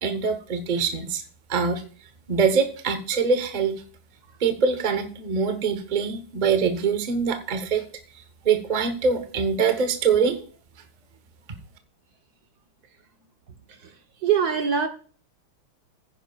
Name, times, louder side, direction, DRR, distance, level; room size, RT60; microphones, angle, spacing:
voice 1, 0.0-1.2 1.5-1.8 2.3-3.8 4.4-7.8 8.4-10.4, right 5 dB, 30° right, 0.9 m, -23 dB
voice 2, 14.2-14.9, right 7 dB, 55° right, 1.4 m, -22 dB
15.0 x 10.0 x 2.4 m
omnidirectional pair, 2.1 m